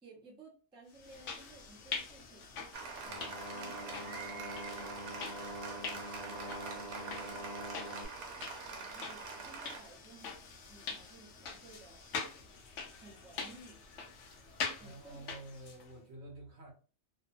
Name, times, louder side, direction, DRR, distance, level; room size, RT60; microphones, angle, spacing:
voice 1, 0.0-2.7 3.5-5.2 8.7-10.4 10.6-12.5 12.8-13.8 14.7-15.3, right 2 dB, 5° right, 0.5 m, -57 dB
sound 1, 0.9-15.9, left 5 dB, 65° left, 0.8 m, -45 dB
Applause, 2.7-9.8, right 4 dB, 80° right, 1.1 m, -44 dB
sound 2, 3.1-8.1, equal, 85° left, 1.1 m, -45 dB
voice 2, 14.8-16.7, right 1 dB, 55° right, 0.9 m, -49 dB
2.8 x 2.1 x 2.6 m
omnidirectional pair, 1.5 m